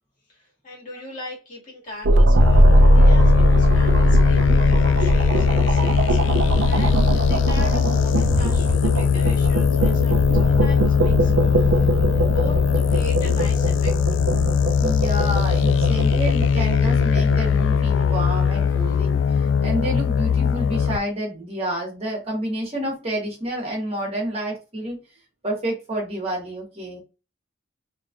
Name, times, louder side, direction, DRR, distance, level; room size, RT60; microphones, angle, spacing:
voice 1, 0.3-11.9 12.2-14.0 15.8-15.9 17.9-18.0 18.7-19.0, left 1 dB, 45° left, -3 dB, 1.9 m, -38 dB
sound 1, 2.0-19.3, right 1 dB, 80° right, 0.5 m, -21 dB
sound 2, 2.4-21.0, left 7 dB, 85° left, 0.3 m, -20 dB
voice 2, 14.8-25.0 25.4-27.0, right 1 dB, 35° right, -1 dB, 1.7 m, -29 dB
4.6 x 3.2 x 2.4 m, 0.30 s
head